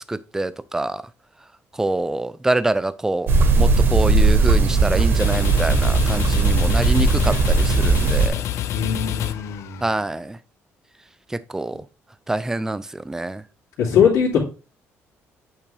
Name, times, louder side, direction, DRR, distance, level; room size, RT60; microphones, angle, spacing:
voice 1, 0.1-1.0 1.8-3.3 3.6-8.3 9.8-10.4 11.5-11.8 12.3-13.4, right 2 dB, 10° right, 0.4 m, -25 dB
sound 1, 3.3-8.3, right 3 dB, 50° right, 1.0 m, -18 dB
sound 2, 4.9-10.1, left 11 dB, 70° left, 0.5 m, -28 dB
voice 2, 8.7-9.8 13.8-14.4, left 7 dB, 90° left, 2.5 m, -20 dB
8.4 x 3.5 x 3.3 m
cardioid pair, 125°, 5 cm